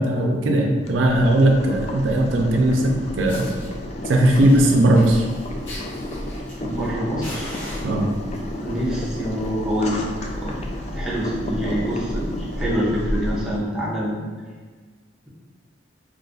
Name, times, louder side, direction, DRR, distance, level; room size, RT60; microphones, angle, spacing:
voice 1, 0.0-3.5 4.1-5.3 7.8-8.1, right 1 dB, 75° right, 1 dB, 0.4 m, -18 dB
Boiling, 0.8-13.6, left 1 dB, 35° left, 0.3 m, -31 dB
Fire, 2.8-2.9 3.3-3.7 4.3-6.9 7.2-8.4 9.2-9.5 9.8-9.9 10.3-10.4 10.6-10.8 11.4-11.5 12.4-12.5, left 1 dB, 70° left, 1.0 m, -39 dB
voice 2, 6.6-7.6 8.6-10.6 10.9-14.2, equal, 5° right, -8 dB, 0.7 m, -26 dB
2.5 x 2.4 x 3.9 m, 1.4 s
head